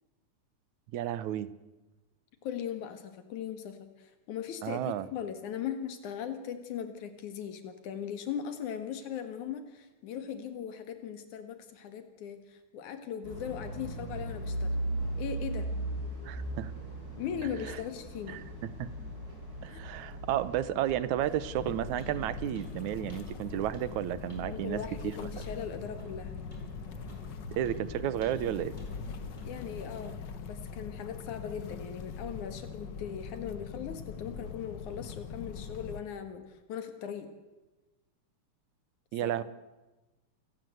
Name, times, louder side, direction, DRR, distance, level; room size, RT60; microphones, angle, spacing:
voice 1, 0.9-1.5 4.6-5.1 16.3-16.7 18.3-18.4 18.8-18.9 19.6-24.8 27.5-28.7 39.1-39.4, right 12 dB, 80° right, 16 dB, 2.4 m, -32 dB
voice 2, 2.4-14.8 15.2-15.7 17.2-18.4 19.7-19.8 24.5-26.4 29.4-37.3 39.2-39.4, left 8 dB, 85° left, 8 dB, 3.2 m, -39 dB
sound 1, 13.2-30.1, right 1 dB, 30° right, 5.8 m, -40 dB
sound 2, 20.3-20.4 20.9-21.1 21.4-21.6 22.0-22.1 22.5-22.7 23.1-23.2 23.7-23.9 24.3-24.5 24.8-25.0 25.4-25.6 26.0-26.1 26.5-26.7 27.1-27.3 27.6-27.8 28.2-28.5 28.8-28.9 29.4-29.5, left 1 dB, 15° left, 6.2 m, -52 dB
sound 3, 21.5-36.0, left 6 dB, 50° left, 1.4 m, -42 dB
29.0 x 19.0 x 8.0 m, 1.1 s
omnidirectional pair, 3.4 m